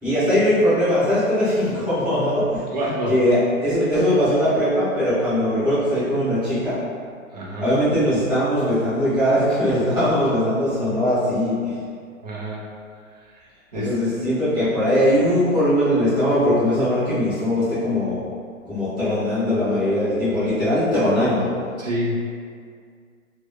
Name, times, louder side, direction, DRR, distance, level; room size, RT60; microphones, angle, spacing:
voice 1, 0.0-2.6 3.1-6.9 7.6-11.8 13.7-18.2 18.6-21.6, equal, 10° right, -15 dB, 1.4 m, -20 dB
voice 2, 2.7-3.2 7.3-7.8 12.2-12.6 13.3-13.4 13.7-13.9 21.8-22.3, equal, 35° right, -4 dB, 0.4 m, -27 dB
3.1 x 2.0 x 2.2 m, 2.1 s
hypercardioid pair, 140°, 42 cm